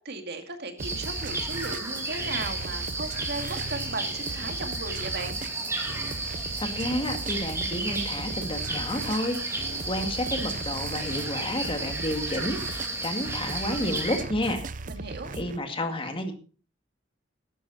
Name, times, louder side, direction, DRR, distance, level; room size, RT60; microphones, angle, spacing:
voice 1, 0.0-5.4 14.9-15.3, right 3 dB, 60° right, 5 dB, 2.2 m, -36 dB
sound 1, 0.8-14.2, right 2 dB, 15° right, 2.8 m, -33 dB
sound 2, 0.8-15.6, right 3 dB, 45° right, 0.7 m, -38 dB
voice 2, 6.6-14.6 15.3-16.3, left 1 dB, 30° left, 5 dB, 2.2 m, -31 dB
14.5 x 11.5 x 4.1 m, 0.37 s
head